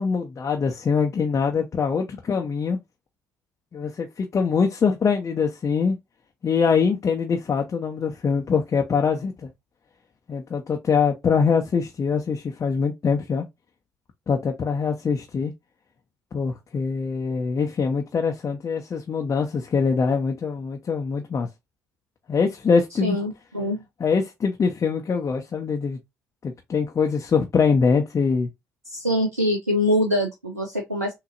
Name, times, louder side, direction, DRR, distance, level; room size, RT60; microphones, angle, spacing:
voice 1, 0.0-2.8 3.7-6.0 6.4-9.5 10.3-13.5 14.3-15.5 16.3-21.5 22.3-23.2 24.0-26.0 26.4-28.5, left 5 dB, 40° left, 0.9 m, -23 dB
voice 2, 23.0-23.8 28.8-31.1, left 1 dB, 90° right, 0.6 m, -24 dB
6.2 x 2.8 x 2.6 m
figure-of-eight pair, 45°, 8 cm